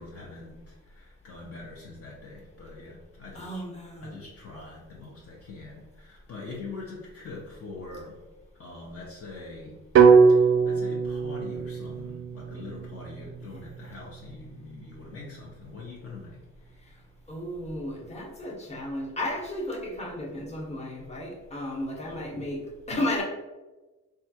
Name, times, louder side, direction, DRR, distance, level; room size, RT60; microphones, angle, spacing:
voice 1, 0.0-3.6 4.0-8.2 8.6-9.8 10.3-16.4 22.1-22.4, left 3 dB, 50° left, -3 dB, 0.7 m, -43 dB
voice 2, 3.3-4.2 13.4-13.6 17.3-23.2, left 1 dB, 20° left, -3 dB, 1.0 m, -34 dB
sound 1, 10.0-14.0, right 5 dB, 45° right, 0.4 m, -21 dB
3.2 x 2.3 x 2.8 m, 1.1 s
cardioid pair, 90°, 30 cm